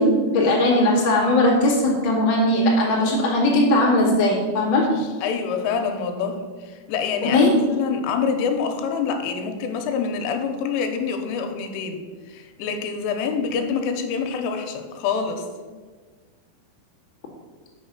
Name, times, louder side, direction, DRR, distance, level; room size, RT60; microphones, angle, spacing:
voice 1, 0.0-4.8 7.2-7.6, left 1 dB, 60° left, -4 dB, 1.1 m, -19 dB
voice 2, 5.0-15.5, left 6 dB, 85° left, 5 dB, 3.3 m, -26 dB
6.4 x 6.4 x 6.0 m, 1.4 s
omnidirectional pair, 5.7 m